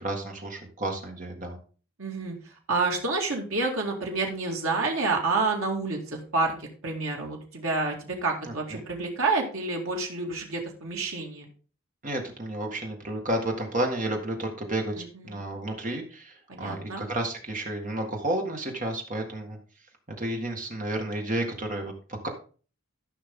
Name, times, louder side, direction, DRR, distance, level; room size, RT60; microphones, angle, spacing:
voice 1, 0.0-1.6 12.0-19.6 20.2-21.9, right 1 dB, 35° right, 2 dB, 1.8 m, -31 dB
voice 2, 2.0-2.4 2.7-11.4 15.0-15.4 16.5-17.0, right 3 dB, 70° right, 0 dB, 2.2 m, -29 dB
14.0 x 5.5 x 3.7 m, 0.39 s
head